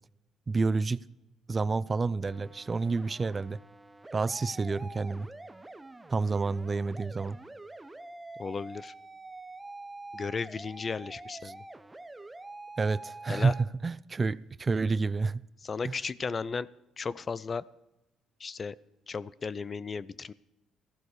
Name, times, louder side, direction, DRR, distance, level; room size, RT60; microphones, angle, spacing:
voice 1, 0.5-1.0 1.5-3.6 4.1-5.3 6.1-7.4 11.4-11.5 12.8-15.4 15.8-15.9, right 4 dB, 30° right, 0.3 m, -29 dB
sound 1, 2.3-13.6, right 2 dB, 15° right, 0.8 m, -46 dB
voice 2, 8.4-8.9 10.1-11.6 13.3-13.5 15.6-16.7 17.0-17.7 18.4-18.8 19.1-20.3, left 5 dB, 35° left, 0.4 m, -35 dB
15.0 x 11.5 x 4.9 m
cardioid pair, 95°, 0 cm